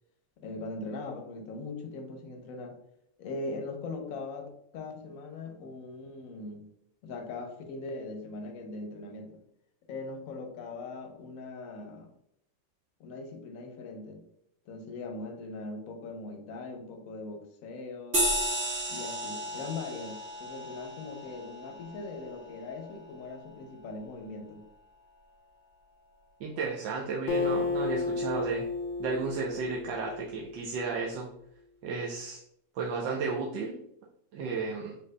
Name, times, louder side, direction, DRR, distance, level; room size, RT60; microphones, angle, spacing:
voice 1, 0.4-2.8 3.2-6.7 7.0-9.4 9.9-12.1 13.0-14.2 14.7-18.2 18.9-24.6, left 3 dB, 60° left, 4 dB, 1.0 m, -40 dB
sound 1, 18.1-23.0, equal, 30° right, 1.4 m, -34 dB
voice 2, 26.4-28.6 29.0-31.3 31.8-32.4 32.8-33.8 34.3-35.0, right 4 dB, 85° right, -2 dB, 1.3 m, -33 dB
Acoustic guitar, 27.3-30.9, left 4 dB, 90° left, 1.4 m, -32 dB
5.5 x 3.5 x 2.2 m, 0.74 s
omnidirectional pair, 2.0 m